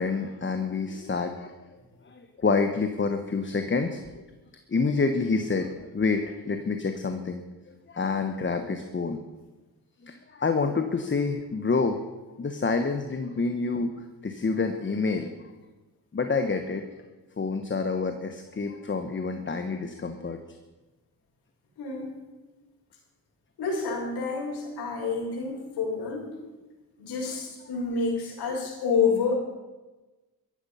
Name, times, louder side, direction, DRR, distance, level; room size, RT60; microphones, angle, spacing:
voice 1, 0.0-1.5 2.1-4.0 4.7-7.4 7.9-9.2 10.0-12.0 12.4-13.9 14.2-15.3 16.1-16.8 17.4-20.4, left 4 dB, 30° left, 7 dB, 1.3 m, -27 dB
voice 2, 21.8-22.2 23.6-26.3 27.0-29.3, left 5 dB, 80° left, -3 dB, 6.2 m, -28 dB
15.0 x 13.0 x 5.8 m, 1.2 s
cardioid pair, 80°, 38 cm